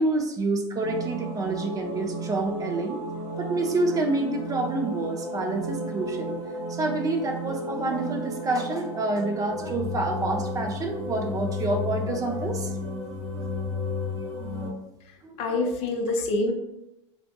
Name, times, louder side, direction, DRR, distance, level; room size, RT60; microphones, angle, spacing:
voice 1, 0.0-3.0 3.4-6.4 6.7-13.9 14.2-14.3 14.6-14.8 15.2-15.3, right 2 dB, 20° right, 3 dB, 0.4 m, -28 dB
sound 1, 0.8-14.7, left 1 dB, 75° right, 1.0 m, -33 dB
voice 2, 15.0-16.5, left 2 dB, 40° left, 4 dB, 0.5 m, -27 dB
3.9 x 2.5 x 2.2 m, 0.87 s
figure-of-eight pair, 85°, 16 cm